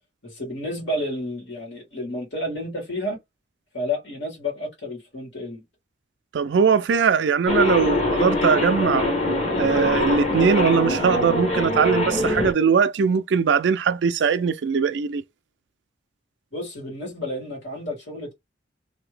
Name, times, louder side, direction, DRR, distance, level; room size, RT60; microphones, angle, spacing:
voice 1, 0.2-3.2 3.7-5.6 16.5-18.3, left 1 dB, 80° left, 1.9 m, -31 dB
voice 2, 6.3-9.1 9.6-15.2, right 6 dB, 70° right, 0.4 m, -20 dB
sound 1, 7.5-12.5, left 2 dB, 35° left, 1.1 m, -23 dB
2.9 x 2.7 x 3.3 m
head